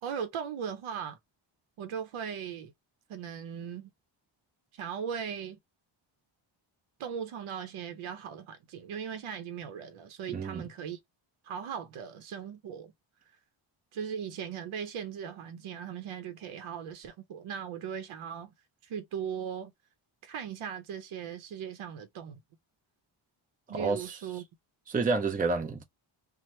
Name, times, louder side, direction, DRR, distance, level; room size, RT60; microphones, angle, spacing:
voice 1, 0.0-1.2 1.8-2.7 3.1-3.9 4.7-5.6 7.0-11.0 11.4-12.9 13.9-18.5 18.8-19.7 20.2-22.4 23.7-24.4, right 7 dB, 75° right, 0.7 m, -38 dB
voice 2, 10.3-10.6 23.7-24.1 24.9-25.8, right 4 dB, 20° right, 0.5 m, -29 dB
2.9 x 2.1 x 3.0 m
cardioid pair, 115°, 49 cm